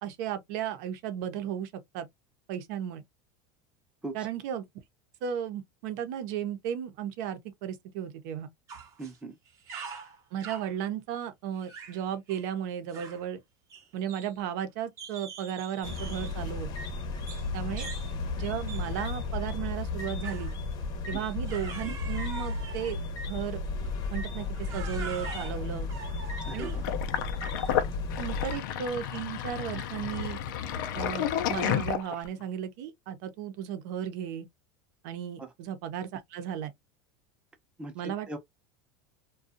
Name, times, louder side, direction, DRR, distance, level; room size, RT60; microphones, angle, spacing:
voice 1, 0.0-2.1 2.5-3.0 4.1-4.6 5.2-8.5 10.3-13.4 13.9-16.7 17.5-17.9 18.4-20.5 21.1-23.0 23.2-23.6 24.1-24.5 24.7-25.9 26.5-26.8 28.2-30.4 30.9-34.5 35.0-36.7 37.9-38.4, right 9 dB, 65° right, 0.7 m, -35 dB
sound 1, 8.7-9.2 9.5-10.7 11.6-12.0 12.3-12.5 12.9-13.3 13.7-14.6 15.0-16.4 17.3-17.5 17.8-18.1 18.7-18.9 20.2-20.6 21.5-23.0 23.8-24.0 24.6-26.9, right 5 dB, 30° right, 0.8 m, -43 dB
voice 2, 9.0-9.4 17.8-17.9 21.1-21.2 26.4-26.9 35.4-35.5 37.8-38.4, right 2 dB, 10° right, 0.6 m, -40 dB
sound 2, 15.8-28.6, left 3 dB, 40° left, 0.7 m, -34 dB
Sink (filling or washing), 26.8-32.4, left 9 dB, 85° left, 0.5 m, -31 dB
2.5 x 2.3 x 2.5 m
supercardioid pair, 145°, 10 cm